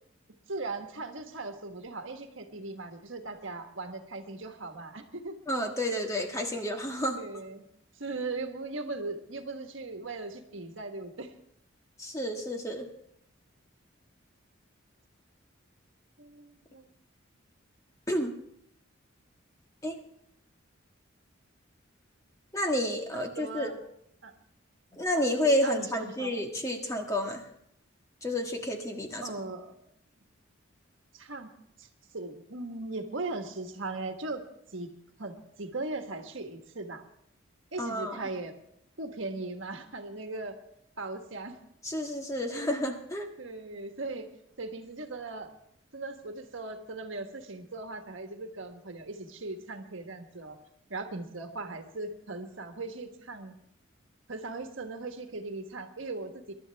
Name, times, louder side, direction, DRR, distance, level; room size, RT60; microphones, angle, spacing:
voice 1, 0.5-5.4 6.6-6.7 7.2-7.7 7.9-11.3 16.2-16.9 23.1-23.8 24.2-24.3 25.6-26.4 29.2-29.8 31.1-31.5 31.8-34.4 34.7-34.9 35.2-37.0 37.7-38.5 39.0-40.6 41.0-41.6 43.4-44.3 44.6-45.5 45.9-50.6 50.9-53.5 54.3-56.5, right 3 dB, 70° right, 5 dB, 1.5 m, -38 dB
voice 2, 5.5-7.2 12.0-12.9 18.1-18.3 19.8-19.9 22.5-23.7 25.0-27.4 28.2-29.2 37.8-38.2 41.8-43.3, left 1 dB, 15° left, 3 dB, 1.5 m, -30 dB
23.0 x 11.5 x 3.5 m, 0.72 s
head